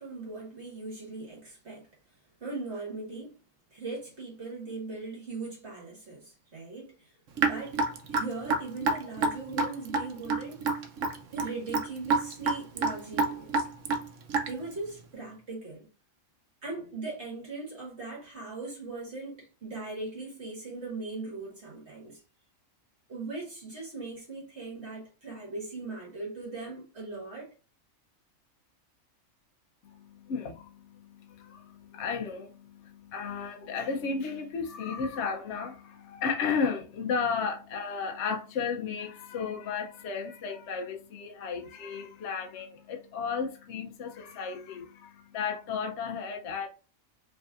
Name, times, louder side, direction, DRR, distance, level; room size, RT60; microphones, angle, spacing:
voice 1, 0.0-1.9 2.4-3.4 3.7-7.8 8.1-10.7 11.3-13.7 14.5-15.9 16.6-22.2 23.1-27.5, right 3 dB, 55° right, 1.9 m, -39 dB
Raindrop / Drip, 7.4-14.7, right 3 dB, 70° right, 1.1 m, -28 dB
voice 2, 29.8-46.7, left 5 dB, 65° left, 1.0 m, -34 dB
5.3 x 3.2 x 2.4 m
omnidirectional pair, 1.4 m